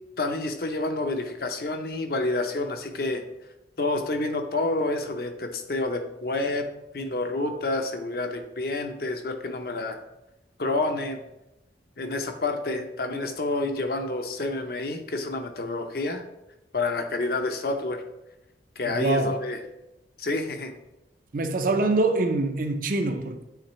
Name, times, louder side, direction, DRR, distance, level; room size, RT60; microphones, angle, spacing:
voice 1, 0.2-3.2 3.8-6.7 6.9-10.0 10.6-11.2 12.0-16.2 16.7-18.0 18.8-19.6 20.2-20.7, left 2 dB, 55° left, 0.7 m, -28 dB
voice 2, 18.9-19.4 21.3-23.4, right 2 dB, 45° right, 0.5 m, -24 dB
9.1 x 3.6 x 3.1 m
head